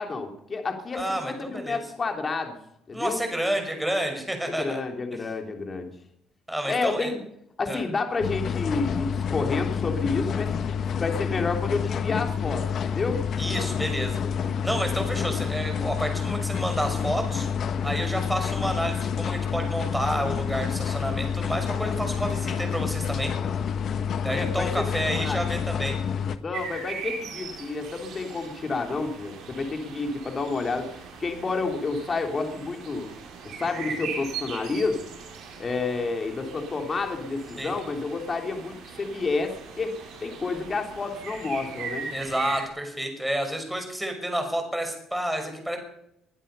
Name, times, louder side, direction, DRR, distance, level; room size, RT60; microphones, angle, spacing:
voice 1, 0.0-2.6 2.9-3.2 4.5-5.9 6.7-7.2 7.6-10.5 11.0-13.2 15.2-15.3 24.3-25.4 26.4-30.9 31.2-33.1 33.5-35.1 35.6-42.1, left 3 dB, 35° left, 4 dB, 3.3 m, -30 dB
voice 2, 0.9-1.8 2.9-4.8 6.5-7.1 7.7-7.8 13.4-17.5 17.8-23.3 24.2-26.0 37.6-37.7 42.1-45.8, right 1 dB, 5° right, 4 dB, 5.8 m, -30 dB
sound 1, 8.2-26.4, left 7 dB, 55° left, 1.4 m, -28 dB
sound 2, 26.5-42.7, right 5 dB, 70° right, 5.8 m, -40 dB
22.0 x 11.0 x 5.6 m, 0.77 s
cardioid pair, 85°, 0 cm